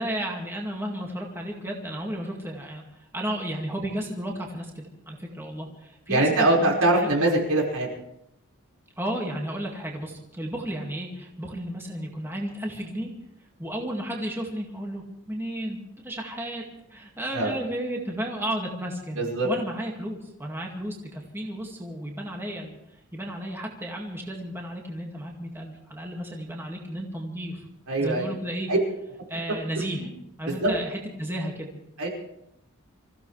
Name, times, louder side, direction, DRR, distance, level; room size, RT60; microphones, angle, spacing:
voice 1, 0.0-7.2 9.0-13.1 13.6-16.6 16.9-22.8 23.1-27.7 28.0-28.7 29.3-30.1 30.4-31.7, right 1 dB, 10° right, -1 dB, 2.1 m, -33 dB
voice 2, 6.1-7.9 17.3-17.5 19.1-19.5 27.9-28.3 28.7-28.8 30.0-30.1 30.6-30.7 32.0-32.1, right 2 dB, 85° right, -2 dB, 5.2 m, -22 dB
26.5 x 15.5 x 3.3 m, 0.82 s
head